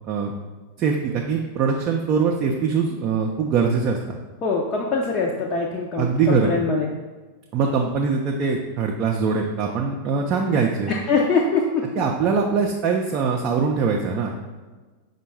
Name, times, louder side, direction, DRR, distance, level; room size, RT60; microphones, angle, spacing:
voice 1, 0.8-4.2 6.0-6.5 7.5-10.9 12.0-14.3, right 5 dB, 35° right, 0 dB, 0.4 m, -22 dB
voice 2, 4.4-6.9 10.9-11.8, left 4 dB, 35° left, -3 dB, 0.5 m, -23 dB
5.1 x 2.2 x 4.5 m, 1.3 s
figure-of-eight pair, 90°, 0 cm